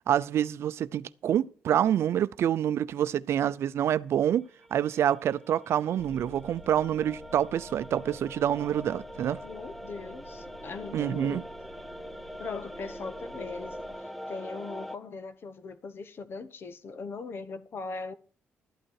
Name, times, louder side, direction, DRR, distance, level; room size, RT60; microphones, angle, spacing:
voice 1, 0.1-9.4 10.9-11.4, right 10 dB, 70° right, 0.5 m, -27 dB
sound 1, 4.6-15.0, equal, ahead, 0.7 m, -43 dB
sound 2, 6.0-14.0, left 2 dB, 70° left, 6.6 m, -52 dB
voice 2, 9.4-11.5 12.4-18.1, left 4 dB, 55° left, 1.1 m, -40 dB
12.5 x 8.8 x 4.7 m
cardioid pair, 80°, 5 cm